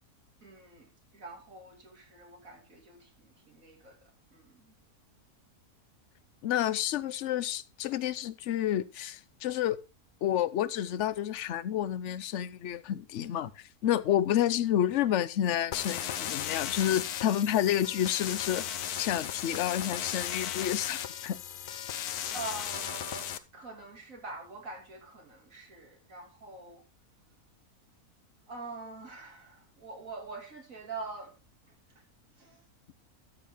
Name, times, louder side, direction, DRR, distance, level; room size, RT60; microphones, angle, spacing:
voice 1, 0.4-4.7 22.3-26.8 28.5-31.4 31.7-32.0 32.4-32.6, right 3 dB, 60° right, 2.7 m, -45 dB
voice 2, 6.4-9.8 10.2-18.7 19.0-21.4, left 11 dB, 60° left, 0.9 m, -29 dB
sound 1, 15.7-23.4, left 10 dB, 85° left, 1.3 m, -36 dB
13.0 x 7.4 x 3.5 m
omnidirectional pair, 1.6 m